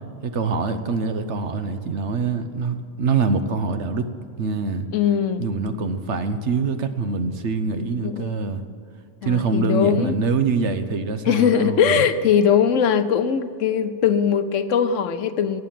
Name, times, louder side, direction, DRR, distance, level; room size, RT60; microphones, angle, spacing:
voice 1, 0.2-4.1 4.4-4.9 5.4-8.6 9.2-12.0, right 4 dB, 65° right, 9 dB, 1.2 m, -24 dB
voice 2, 4.9-5.5 8.0-8.3 9.2-10.2 11.3-15.6, left 7 dB, 80° left, 11 dB, 1.1 m, -20 dB
18.5 x 8.5 x 7.6 m, 2.6 s
omnidirectional pair, 1.3 m